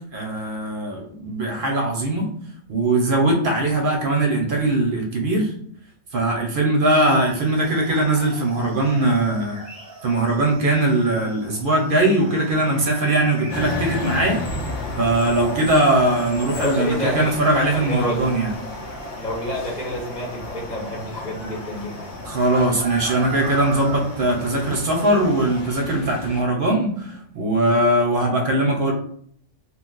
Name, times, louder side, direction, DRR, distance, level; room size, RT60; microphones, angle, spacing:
voice 1, 0.1-2.3 2.7-5.5 6.1-9.6 10.0-14.4 15.0-18.5 22.2-28.9, right 2 dB, 55° right, 0 dB, 0.7 m, -20 dB
sound 1, 7.0-25.6, right 2 dB, 5° left, 0.9 m, -40 dB
sound 2, 13.5-26.4, left 2 dB, 70° left, 0.8 m, -33 dB
voice 2, 16.5-18.3 19.2-22.1, left 1 dB, 40° left, -3 dB, 0.9 m, -29 dB
2.4 x 2.2 x 3.8 m, 0.62 s
omnidirectional pair, 1.3 m